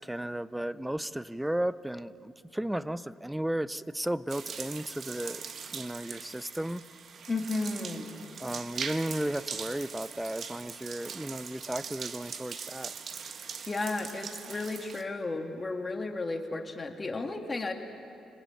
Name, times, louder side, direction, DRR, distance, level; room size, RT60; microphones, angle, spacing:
voice 1, 0.0-5.4 5.7-6.8 8.4-12.9, right 1 dB, 5° right, 16 dB, 0.6 m, -34 dB
sound 1, 4.3-15.0, right 6 dB, 55° right, 1.3 m, -41 dB
voice 2, 7.3-8.2 13.7-17.7, left 3 dB, 25° left, 3 dB, 2.5 m, -33 dB
26.0 x 20.0 x 9.2 m, 2.7 s
cardioid pair, 90°, 0 cm